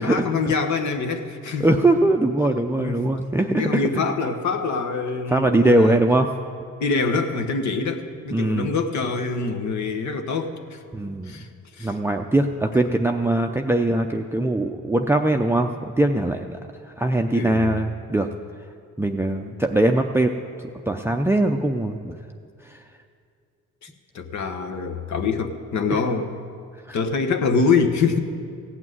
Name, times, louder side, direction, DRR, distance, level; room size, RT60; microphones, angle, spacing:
voice 1, 0.0-1.7 2.8-3.0 3.5-6.0 6.8-10.8 11.3-11.5 11.8-11.9 17.3-17.7 23.8-23.9 24.1-26.3 26.9-28.2, left 4 dB, 70° left, 6 dB, 1.2 m, -25 dB
voice 2, 1.6-4.0 5.3-6.3 8.3-8.8 10.9-11.4 11.8-16.6 17.0-18.3 19.0-20.3 20.9-22.1 22.7-22.8 25.9-26.0 26.9-27.0, right 1 dB, 10° right, 4 dB, 0.5 m, -21 dB
16.0 x 6.1 x 9.1 m, 2.3 s
cardioid pair, 90°, 30 cm